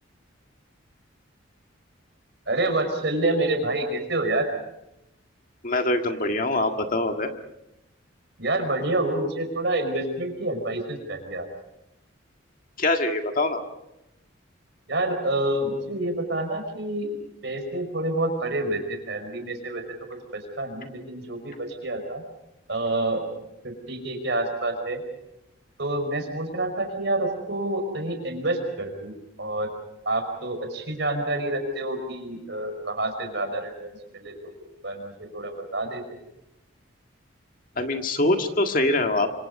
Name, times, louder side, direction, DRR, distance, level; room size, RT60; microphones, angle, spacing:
voice 1, 2.5-4.5 8.4-11.5 14.9-17.1 17.4-19.8 20.1-22.2 22.7-23.2 23.6-25.0 25.8-29.1 29.4-29.7 30.1-36.0, right 2 dB, 60° right, 6 dB, 5.3 m, -28 dB
voice 2, 5.6-7.3 12.8-13.6 37.8-39.3, left 2 dB, 45° left, 5 dB, 1.9 m, -24 dB
26.5 x 26.0 x 5.4 m, 0.87 s
head